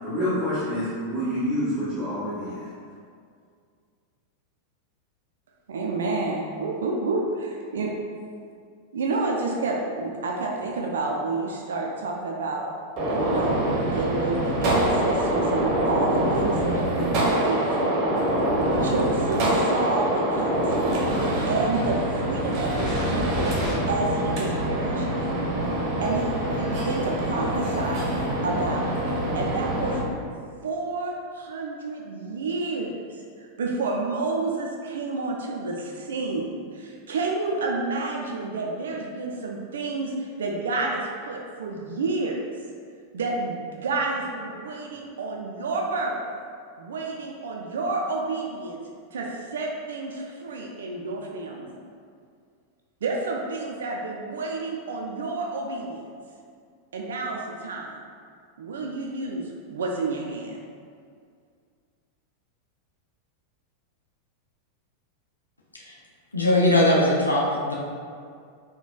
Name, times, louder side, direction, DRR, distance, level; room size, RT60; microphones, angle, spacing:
voice 1, 0.0-2.7, equal, 5° right, -12 dB, 0.9 m, -27 dB
voice 2, 5.7-7.9 8.9-12.7 13.2-18.1 18.7-25.2 26.0-28.1 28.4-29.0 29.3-29.9 30.6-42.4 43.1-46.2 46.8-48.8 49.1-51.8 53.0-56.1 56.9-58.0 58.6-60.5, right 3 dB, 65° right, -1 dB, 0.3 m, -30 dB
Gunshot gunfire, 13.0-30.0, right 1 dB, 40° right, 0.7 m, -25 dB
sound 1, 14.5-20.0 20.7-20.8 22.7-23.7, equal, 20° left, 1.4 m, -34 dB
voice 3, 66.3-67.8, left 1 dB, 80° left, -3 dB, 0.4 m, -20 dB
3.9 x 2.1 x 2.3 m, 2.2 s
figure-of-eight pair, 90°, 0 cm